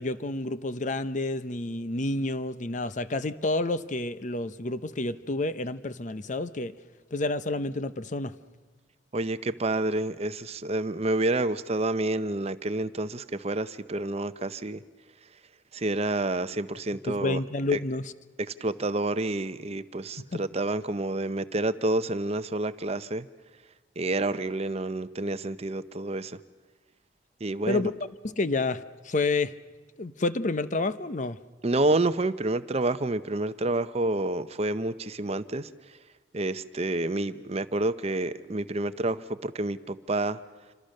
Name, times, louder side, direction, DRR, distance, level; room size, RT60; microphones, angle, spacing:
voice 1, 0.0-6.7 7.1-8.3 17.1-18.1 20.3-20.4 27.7-27.9 28.2-29.5 30.0-31.4, left 2 dB, 40° left, 13 dB, 0.7 m, -29 dB
voice 2, 9.1-14.8 15.7-17.4 17.7-17.8 18.6-23.3 24.0-26.4 27.4-27.8 31.6-35.7 36.3-40.4, right 2 dB, 35° right, 13 dB, 0.7 m, -29 dB
28.0 x 25.5 x 6.5 m, 1.3 s
head